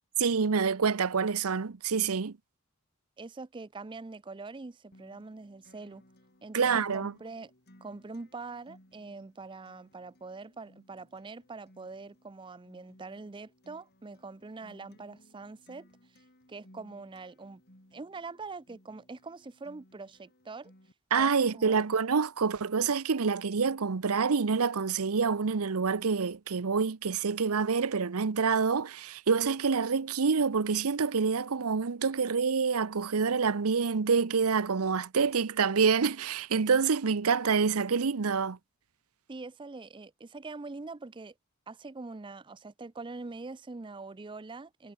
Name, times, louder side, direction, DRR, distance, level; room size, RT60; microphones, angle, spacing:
voice 1, 0.2-2.4 6.5-7.1 21.1-38.6, right 5 dB, 80° right, 0.7 m, -27 dB
voice 2, 3.2-6.0 6.4-7.5 7.8-15.9 16.1-16.2 16.5-17.6 17.9-20.7 21.2-21.8 39.3-41.3 41.7-44.9, right 3 dB, 20° right, 0.4 m, -44 dB
Acoustic guitar, 4.9-20.9, equal, 45° left, 6.9 m, -60 dB
head